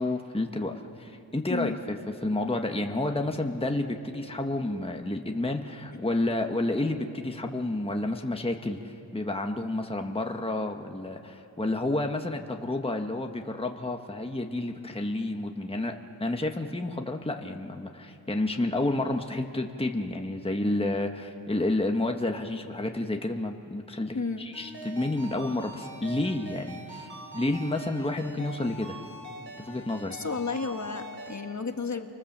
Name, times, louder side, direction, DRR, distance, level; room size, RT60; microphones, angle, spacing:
voice 1, 0.0-2.0 2.2-15.9 16.2-27.1 27.3-29.0 29.6-30.2, left 2 dB, 15° left, 4 dB, 1.3 m, -30 dB
voice 2, 24.1-24.5 30.1-32.1, left 4 dB, 40° left, 6 dB, 1.5 m, -32 dB
Ringtone, 24.5-31.4, right 1 dB, 30° right, 6.6 m, -43 dB
30.0 x 25.0 x 7.4 m, 2.8 s
wide cardioid pair, 75°, 42 cm